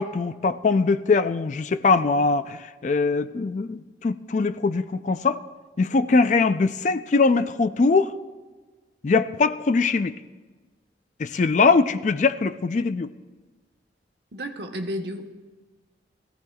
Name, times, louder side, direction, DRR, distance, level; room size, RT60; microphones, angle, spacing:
voice 1, 0.0-5.4 5.8-8.1 9.0-10.1 11.2-13.1, left 4 dB, 40° left, 12 dB, 0.4 m, -22 dB
voice 2, 14.3-15.3, equal, 65° right, 4 dB, 1.1 m, -32 dB
21.5 x 15.0 x 2.3 m, 1.3 s
head